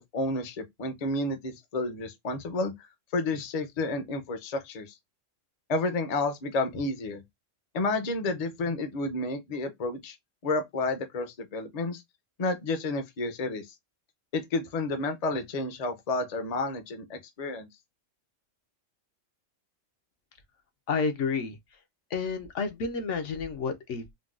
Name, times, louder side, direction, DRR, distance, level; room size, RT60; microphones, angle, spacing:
voice 1, 0.0-5.0 5.7-7.2 7.7-10.2 10.4-12.0 12.4-13.7 14.3-17.7, left 2 dB, 40° left, 0.6 m, -31 dB
voice 2, 20.9-21.6 22.1-24.1, left 5 dB, 70° left, 1.0 m, -30 dB
3.8 x 2.2 x 2.3 m
omnidirectional pair, 1.3 m